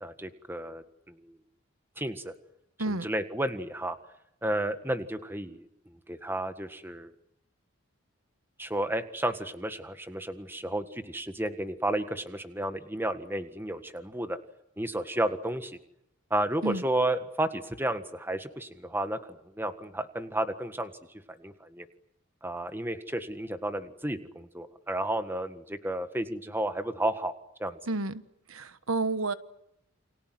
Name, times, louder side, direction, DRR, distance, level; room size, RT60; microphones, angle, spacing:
voice 1, 0.0-1.1 2.0-2.3 2.9-3.9 4.4-5.7 6.1-7.1 8.6-14.4 14.8-15.8 16.3-20.9 21.3-21.9 22.4-27.3 27.6-27.8, right 1 dB, 10° right, 1.6 m, -32 dB
voice 2, 2.8-3.1 16.6-16.8 27.9-28.2 28.5-29.3, right 2 dB, 80° right, 1.3 m, -30 dB
29.5 x 25.5 x 7.8 m
head